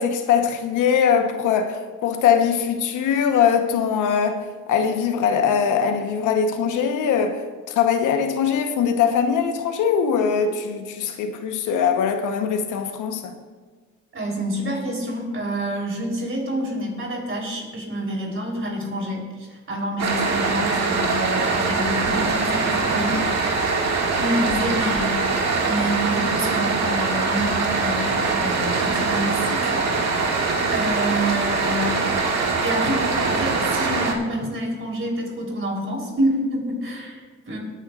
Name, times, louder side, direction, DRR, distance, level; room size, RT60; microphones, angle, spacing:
voice 1, 0.0-13.3, left 7 dB, 90° left, 1.1 m, -21 dB
voice 2, 14.1-23.2 24.1-25.3 25.6-29.7 30.3-32.0 32.6-37.6, right 1 dB, 45° right, 3.8 m, -27 dB
sound 1, 20.0-34.1, right 4 dB, 60° right, 2.1 m, -23 dB
24.0 x 9.6 x 2.5 m
cardioid pair, 90°, 30 cm